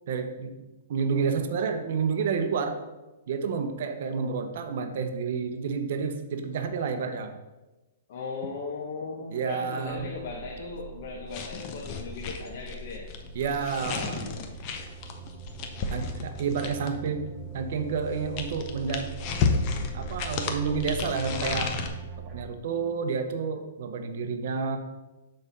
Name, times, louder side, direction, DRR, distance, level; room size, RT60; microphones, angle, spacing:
voice 1, 0.1-0.5 0.9-2.8 3.3-7.3 9.3-10.1 13.3-14.4 15.9-17.3 17.5-19.1 19.9-21.8 22.3-24.8, right 5 dB, 50° right, 7 dB, 0.7 m, -30 dB
voice 2, 8.1-13.1 16.5-16.9, left 4 dB, 45° left, -2 dB, 1.0 m, -37 dB
sound 1, 9.9-22.4, right 5 dB, 15° right, 0.7 m, -42 dB
sound 2, 11.3-17.1 17.9-21.9, left 5 dB, 30° left, 0.6 m, -32 dB
6.4 x 4.3 x 5.3 m, 1.1 s
hypercardioid pair, 170°, 0 cm